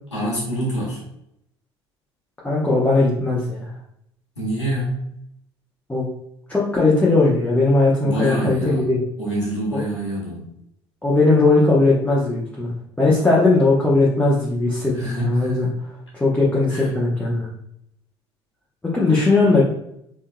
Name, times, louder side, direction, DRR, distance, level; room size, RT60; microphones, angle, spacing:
voice 1, 0.1-1.0 4.4-5.1 8.0-8.9 9.2-10.4 14.9-15.8 16.7-16.9, right 1 dB, 85° left, -7 dB, 1.4 m, -26 dB
voice 2, 2.4-3.6 5.9-6.1 6.5-9.0 9.7-9.8 11.0-12.7 13.0-15.7 16.2-17.5 18.9-19.6, left 2 dB, 10° left, -6 dB, 0.9 m, -18 dB
4.4 x 3.7 x 2.2 m, 0.76 s
figure-of-eight pair, 60°, 14 cm